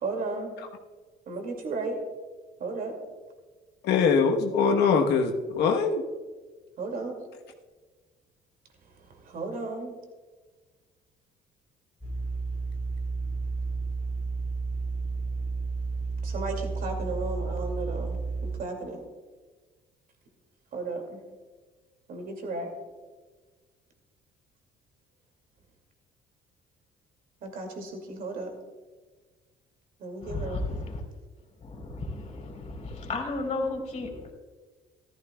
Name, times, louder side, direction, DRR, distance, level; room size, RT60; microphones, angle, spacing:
voice 1, 0.0-0.5 1.3-2.0 2.6-3.0 6.8-7.2 9.3-9.9 16.2-19.0 20.7-21.2 22.1-22.7 27.4-28.5 30.0-30.6, right 3 dB, 60° right, 3 dB, 2.3 m, -34 dB
voice 2, 3.8-6.0, left 5 dB, 75° left, 4 dB, 1.1 m, -22 dB
sound 1, 12.0-18.6, right 4 dB, 10° left, 3.5 m, -32 dB
voice 3, 30.2-31.0 31.6-34.3, left 2 dB, 40° left, 2 dB, 3.5 m, -33 dB
14.5 x 13.5 x 2.3 m, 1.3 s
cardioid pair, 110°, 17 cm